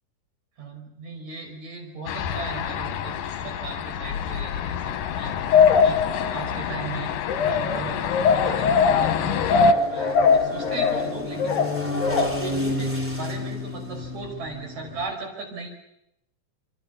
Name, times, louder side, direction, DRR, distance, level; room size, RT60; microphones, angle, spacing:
voice 1, 0.6-3.2 3.4-7.1 7.4-8.0 8.3-15.7, right 4 dB, 60° right, 2 dB, 6.9 m, -37 dB
sound 1, 2.1-9.7, left 10 dB, 90° left, 3.0 m, -29 dB
sound 2, 5.5-6.6 7.3-12.6, left 5 dB, 70° left, 3.1 m, -21 dB
sound 3, 7.5-15.1, left 1 dB, 5° right, 3.7 m, -32 dB
29.5 x 24.0 x 7.1 m, 0.84 s
omnidirectional pair, 3.8 m